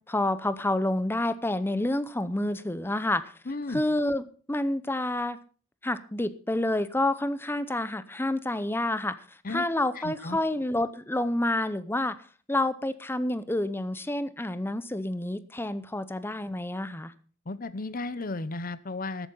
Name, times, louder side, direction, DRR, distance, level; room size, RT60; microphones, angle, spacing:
voice 1, 0.1-3.3 3.7-5.4 5.8-9.2 9.5-12.2 12.5-17.1, left 1 dB, 10° left, 14 dB, 0.7 m, -28 dB
voice 2, 3.5-3.8 9.4-9.6 10.0-10.4 17.5-19.3, left 2 dB, 45° left, 16 dB, 0.8 m, -34 dB
14.0 x 8.7 x 5.4 m, 0.41 s
head